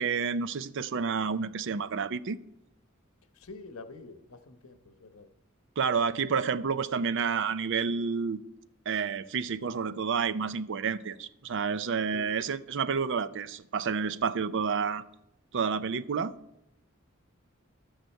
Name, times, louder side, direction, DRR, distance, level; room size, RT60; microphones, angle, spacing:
voice 1, 0.0-2.4 5.8-8.4 8.9-15.0 15.5-16.3, right 5 dB, 60° right, 0.5 m, -29 dB
voice 2, 3.3-5.3 12.1-12.4, left 3 dB, 85° left, 1.0 m, -47 dB
12.5 x 9.0 x 4.5 m
head